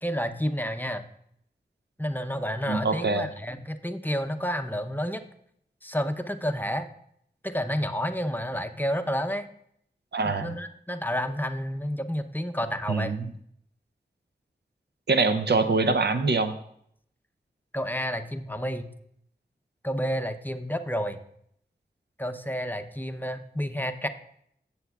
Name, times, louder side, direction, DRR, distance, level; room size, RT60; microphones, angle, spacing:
voice 1, 0.0-1.0 2.0-5.2 5.8-6.9 7.4-9.5 10.4-13.1 17.7-18.9 19.8-21.2 22.2-24.1, equal, 10° left, 8 dB, 0.7 m, -30 dB
voice 2, 2.7-3.3 10.1-10.5 12.9-13.2 15.1-16.5, right 3 dB, 70° right, 9 dB, 0.6 m, -24 dB
16.0 x 7.1 x 2.3 m, 0.69 s
cardioid pair, 40°, 18 cm